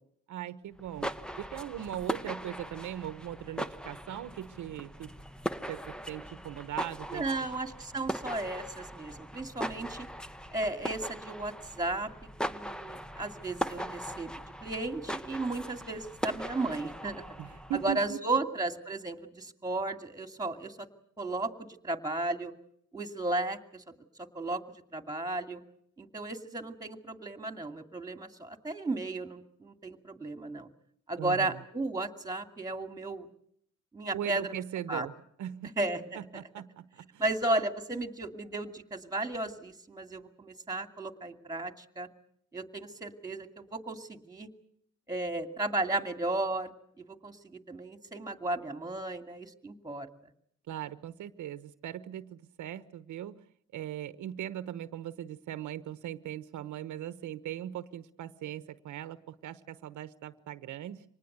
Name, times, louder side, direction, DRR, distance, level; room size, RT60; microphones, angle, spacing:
voice 1, 0.3-5.1 5.7-7.5 17.4-18.2 31.2-31.6 34.1-35.1 35.4-35.8 36.2-37.2 50.7-53.4 53.7-61.0, right 11 dB, 75° right, 13 dB, 1.1 m, -39 dB
sound 1, 0.8-18.1, equal, 5° left, 0.9 m, -40 dB
voice 2, 7.1-10.1 10.5-12.1 12.4-14.3 14.6-17.2 17.8-20.9 21.2-22.5 22.9-23.8 24.2-25.6 26.0-30.7 31.1-33.3 33.9-34.5 34.9-35.1 35.8-36.4 37.2-42.1 42.5-44.5 45.1-46.7 47.0-50.1, right 2 dB, 10° right, 7 dB, 2.5 m, -34 dB
25.0 x 19.5 x 8.1 m, 0.68 s
cardioid pair, 90°, 30 cm